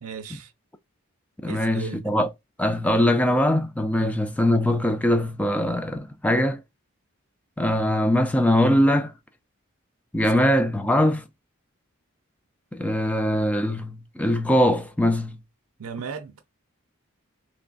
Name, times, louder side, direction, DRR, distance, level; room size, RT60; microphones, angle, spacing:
voice 1, 0.0-0.5 1.5-2.0 4.0-4.2 10.4-10.5 15.8-16.4, right 6 dB, 85° right, 0.5 m, -36 dB
voice 2, 1.4-2.3 2.6-6.6 7.6-9.1 10.1-11.2 12.7-15.4, left 1 dB, 5° left, 0.4 m, -22 dB
3.3 x 3.0 x 4.0 m
head